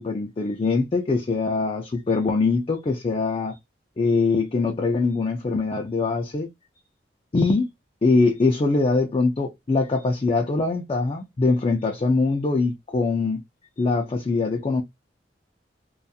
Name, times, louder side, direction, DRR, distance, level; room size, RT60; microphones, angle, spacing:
voice 1, 0.0-3.6 4.0-6.5 7.3-7.7 8.0-13.4 13.8-14.8, left 3 dB, 30° left, 0.3 m, -23 dB
2.4 x 2.3 x 2.6 m
head